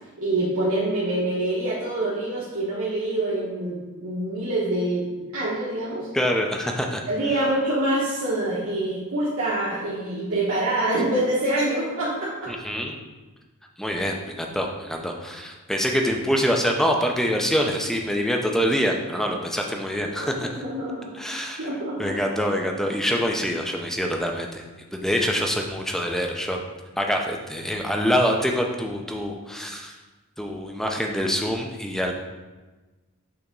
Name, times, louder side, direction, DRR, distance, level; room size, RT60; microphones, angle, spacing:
voice 1, 0.2-6.1 7.1-12.5 20.1-21.1 21.6-22.0, right 1 dB, 65° right, -8 dB, 1.4 m, -26 dB
voice 2, 6.1-7.0 12.5-12.9 13.8-20.6 21.1-21.7 22.0-24.6 24.9-26.6 27.0-29.9 30.4-32.1, equal, ahead, 2 dB, 0.6 m, -25 dB
7.0 x 3.5 x 5.2 m, 1.2 s
head